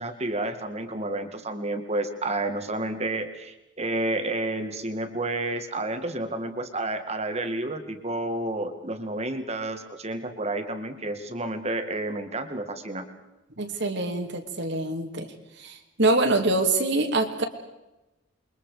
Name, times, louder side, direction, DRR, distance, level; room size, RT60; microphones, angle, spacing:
voice 1, 0.0-13.1, right 2 dB, 35° right, 7 dB, 2.1 m, -30 dB
voice 2, 13.6-15.3 15.6-17.4, right 2 dB, 60° right, 5 dB, 2.8 m, -25 dB
29.0 x 23.5 x 5.0 m, 0.99 s
head